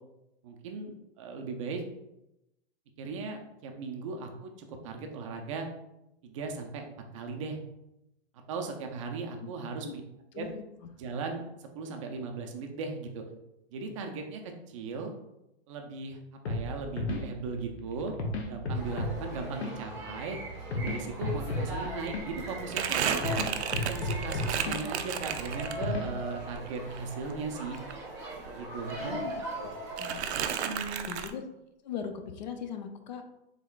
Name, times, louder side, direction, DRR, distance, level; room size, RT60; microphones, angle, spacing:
voice 1, 0.4-1.8 3.0-5.7 6.2-6.9 7.1-7.6 8.5-10.0 10.3-10.5 11.0-13.2 13.7-15.1 15.7-16.2 16.5-18.2 18.4-20.4 20.7-23.2 23.7-27.8 28.5-29.2 29.6-29.7 30.5-31.1, right 4 dB, 30° right, 3 dB, 0.4 m, -38 dB
sound 1, 16.4-26.5, left 2 dB, 80° left, 0.9 m, -35 dB
sound 2, 18.7-30.2, right 1 dB, 10° right, 0.8 m, -40 dB
Crumpling crinkling, 21.3-21.4 21.7-26.1 26.5-28.6 28.9-29.6 30.0-31.3, right 8 dB, 90° right, 0.5 m, -34 dB
voice 2, 29.6-30.2 31.1-31.4 31.8-33.2, left 7 dB, 45° left, 7 dB, 0.4 m, -39 dB
3.5 x 3.5 x 2.3 m, 0.89 s
hypercardioid pair, 155°, 32 cm